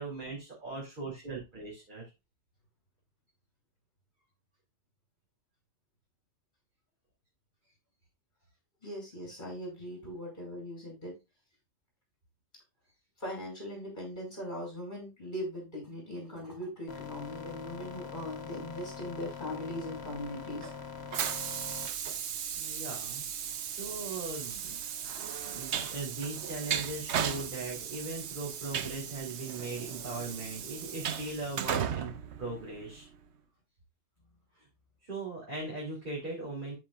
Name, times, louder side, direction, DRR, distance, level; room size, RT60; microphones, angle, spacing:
voice 1, 0.0-2.0 22.6-24.7 25.0-25.1 25.5-32.1 32.4-33.1 34.6-34.7 35.0-36.8, right 3 dB, 50° right, -4 dB, 3.6 m, -39 dB
voice 2, 8.8-11.1 13.2-20.7, left 1 dB, 45° left, -2 dB, 6.4 m, -40 dB
sound 1, 16.9-21.9, left 6 dB, 75° left, 1.5 m, -43 dB
Train, 20.0-33.2, right 8 dB, 90° right, 1.0 m, -36 dB
13.5 x 6.0 x 2.5 m, 0.24 s
omnidirectional pair, 1.1 m